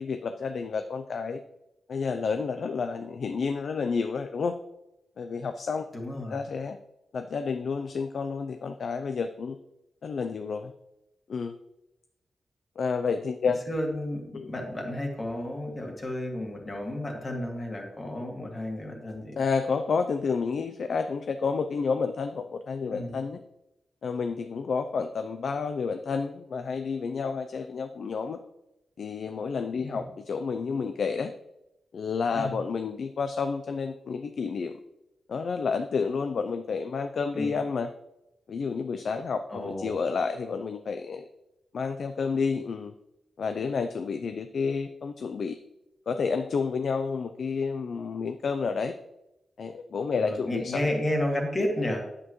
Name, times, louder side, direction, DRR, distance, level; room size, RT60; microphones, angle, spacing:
voice 1, 0.0-1.4 1.9-4.5 5.2-5.8 6.3-6.8 7.1-9.6 10.0-10.7 11.3-11.6 12.8-13.6 14.3-14.5 19.4-23.4 24.0-28.4 29.0-31.3 31.9-34.7 35.3-37.9 38.5-41.2 41.7-42.9 43.4-45.6 46.1-48.9 49.6-50.8, left 5 dB, 60° left, 8 dB, 0.4 m, -30 dB
voice 2, 5.9-6.4 13.4-19.4 22.9-23.2 29.7-30.1 32.3-32.5 37.3-37.6 39.5-40.0 50.1-52.0, left 1 dB, 30° left, 1 dB, 1.9 m, -32 dB
9.8 x 8.5 x 3.1 m, 0.91 s
wide cardioid pair, 135°, 0 cm